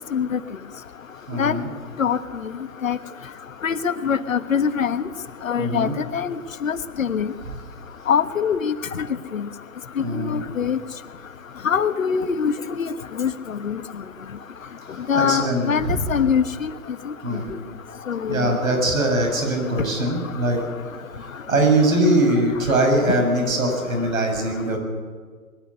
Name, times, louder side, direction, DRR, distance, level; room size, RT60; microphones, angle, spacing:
voice 1, 1.3-1.7 5.6-5.9 10.0-10.4 14.9-16.1 17.2-17.5 18.3-20.6 21.2-24.8, right 1 dB, 65° right, 3 dB, 7.3 m, -22 dB
voice 2, 3.6-5.1 5.4-6.4 6.6-7.3 8.1-9.1 9.3-9.4 10.0-10.8 11.6-12.9 13.2-13.8 15.1-16.7 18.1-18.6, left 7 dB, 65° left, 13 dB, 1.3 m, -23 dB
22.5 x 12.0 x 9.8 m, 1.5 s
figure-of-eight pair, 135°, 43 cm